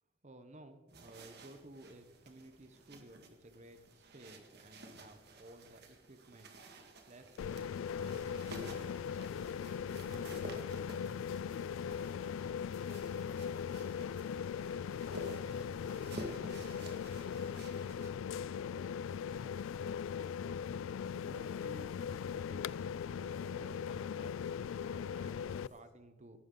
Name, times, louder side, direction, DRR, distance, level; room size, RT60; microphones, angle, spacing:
voice 1, 0.2-6.5 7.1-10.9 21.1-26.4, right 1 dB, 35° right, 9 dB, 0.9 m, -57 dB
sound 1, 0.9-18.1, right 1 dB, 55° right, 1.8 m, -52 dB
sound 2, 7.4-25.7, left 7 dB, 80° left, 0.3 m, -39 dB
voice 2, 25.6-25.9, left 2 dB, 55° left, -1 dB, 4.6 m, -66 dB
19.0 x 12.0 x 3.9 m, 1.3 s
head